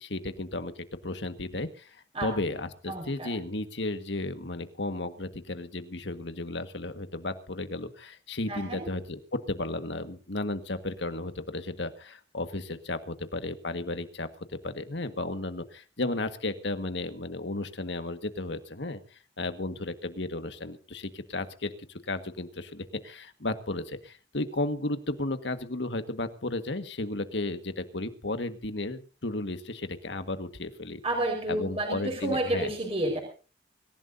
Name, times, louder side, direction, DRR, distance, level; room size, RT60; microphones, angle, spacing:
voice 1, 0.0-21.7 22.0-31.0 31.5-32.7, left 2 dB, 80° left, 9 dB, 1.7 m, -34 dB
voice 2, 2.9-3.3 8.5-8.8 31.0-33.2, right 1 dB, 35° right, 0 dB, 5.0 m, -30 dB
25.5 x 15.5 x 2.8 m, 0.38 s
head